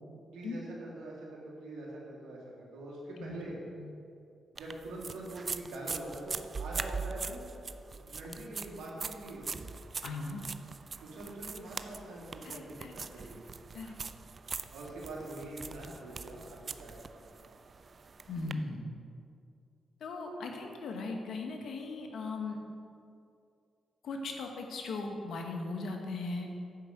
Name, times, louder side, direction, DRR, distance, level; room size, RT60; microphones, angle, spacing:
voice 1, 0.3-3.6 4.5-7.5 8.1-9.5 11.0-13.4 14.7-17.0 17.4-17.5, right 1 dB, 90° right, -4 dB, 2.3 m, -44 dB
sound 1, 4.6-18.5, right 4 dB, 45° right, 0.4 m, -42 dB
voice 2, 10.0-10.4 12.5-12.9 13.7-13.9 18.3-18.9 20.0-22.6 24.0-26.5, left 3 dB, 75° left, 3 dB, 1.3 m, -38 dB
9.8 x 4.9 x 6.7 m, 2.5 s
cardioid pair, 65°, 0 cm